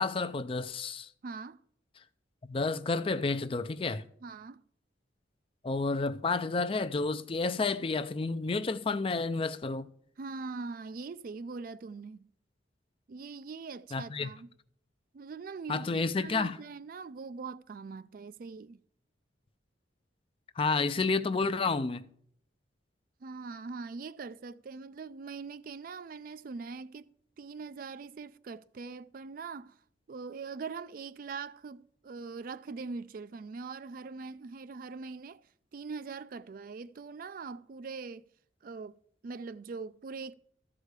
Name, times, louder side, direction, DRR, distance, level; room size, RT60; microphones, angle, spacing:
voice 1, 0.0-1.1 2.5-4.0 5.6-9.9 13.9-14.3 15.7-16.6 20.6-22.0, left 3 dB, 30° left, 0.4 m, -30 dB
voice 2, 1.2-1.6 4.2-4.6 10.2-12.3 13.1-14.5 15.1-18.8 23.2-27.1 27.4-29.8 30.1-35.4 35.7-38.2 38.6-39.0 39.2-40.3, right 4 dB, 50° right, 0.4 m, -42 dB
13.5 x 4.9 x 8.0 m
head